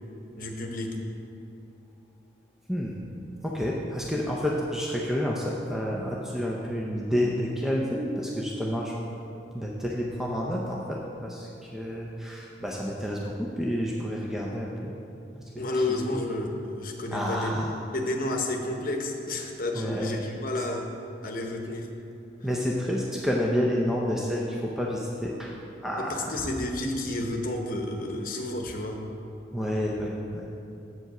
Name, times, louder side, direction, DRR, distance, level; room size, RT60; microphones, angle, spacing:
voice 1, 0.4-1.0 15.6-20.9 21.2-21.9 26.0-29.0, left 2 dB, 50° left, 2 dB, 0.9 m, -31 dB
voice 2, 2.7-3.0 3.4-8.9 9.5-14.9 15.3-15.5 15.9-16.2 17.1-17.8 19.7-20.2 22.4-26.4 29.5-30.5, equal, ahead, -3 dB, 0.5 m, -29 dB
7.8 x 5.1 x 5.9 m, 2.8 s
head